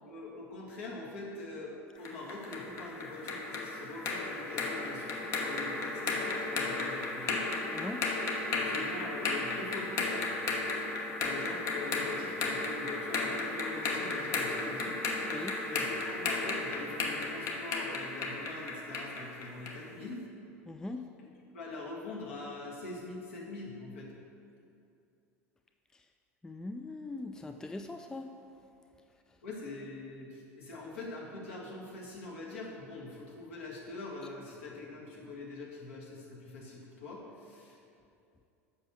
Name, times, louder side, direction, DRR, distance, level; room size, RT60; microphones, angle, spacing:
voice 1, 0.1-7.5 8.5-10.3 11.2-15.0 15.3-20.2 21.5-24.1 29.4-37.8, left 2 dB, 65° left, -4 dB, 1.9 m, -43 dB
sound 1, 2.1-19.9, left 3 dB, 40° left, 1.0 m, -34 dB
voice 2, 20.7-21.0 26.4-28.3, left 2 dB, 10° left, 6 dB, 0.4 m, -40 dB
7.5 x 6.0 x 6.2 m, 2.6 s
figure-of-eight pair, 75°, 8 cm